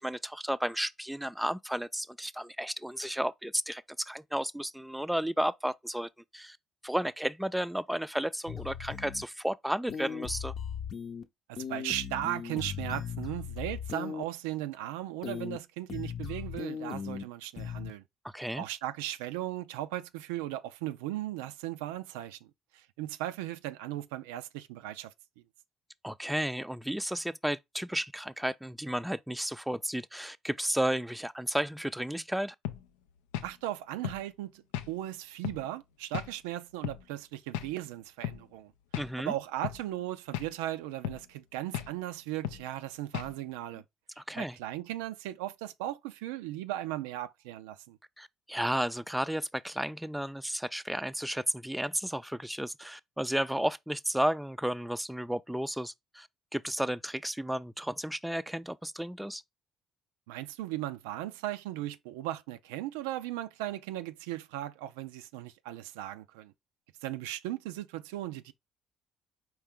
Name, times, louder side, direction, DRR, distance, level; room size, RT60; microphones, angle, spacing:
voice 1, 0.0-6.6 6.8-10.5 18.2-18.6 26.0-32.6 39.0-39.3 44.2-44.6 48.2-59.4, equal, 5° right, 0.4 m, -33 dB
sound 1, 8.5-9.2 9.9-11.2 11.6-14.2 15.2-15.6 15.9-17.2 17.6-17.9, left 7 dB, 60° left, 0.7 m, -38 dB
voice 2, 11.5-18.0 18.5-22.4 22.7-25.1 33.4-38.7 39.2-43.8 44.4-48.0 60.3-66.5 67.0-68.5, right 14 dB, 90° right, 0.3 m, -37 dB
sound 2, 32.6-32.8 33.3-33.5 34.0-34.2 34.7-34.9 35.4-35.6 36.1-36.3 36.8-37.0 37.5-37.7 38.2-38.4 38.9-39.1 39.6-39.8 40.3-40.5 41.0-41.2 41.7-41.9 42.4-42.6 43.1-43.3, left 11 dB, 90° left, 0.4 m, -35 dB
4.5 x 3.2 x 3.6 m
supercardioid pair, 60°, 0 cm